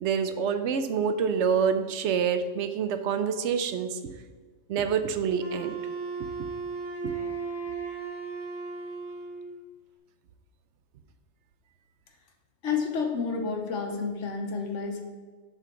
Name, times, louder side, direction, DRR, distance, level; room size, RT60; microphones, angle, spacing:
voice 1, 0.0-4.0 4.7-5.8 7.0-7.1, right 6 dB, 75° right, 10 dB, 0.9 m, -27 dB
Wind instrument woodwind instrument, 5.4-9.5, right 5 dB, 40° right, 1.1 m, -35 dB
voice 2, 12.6-15.0, left 5 dB, 75° left, 4 dB, 1.3 m, -30 dB
7.1 x 5.7 x 4.6 m, 1.4 s
omnidirectional pair, 1.3 m